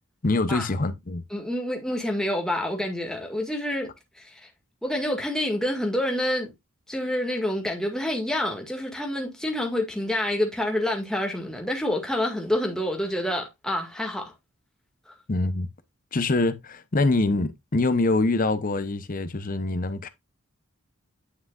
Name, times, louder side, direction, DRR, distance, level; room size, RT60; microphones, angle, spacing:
voice 1, 0.2-1.2 15.3-15.7 16.1-20.1, left 2 dB, 40° left, 0.8 m, -24 dB
voice 2, 1.3-3.9 4.2-4.5 4.8-6.5 6.9-14.3, left 1 dB, 5° left, 1.8 m, -27 dB
9.7 x 6.2 x 2.4 m
head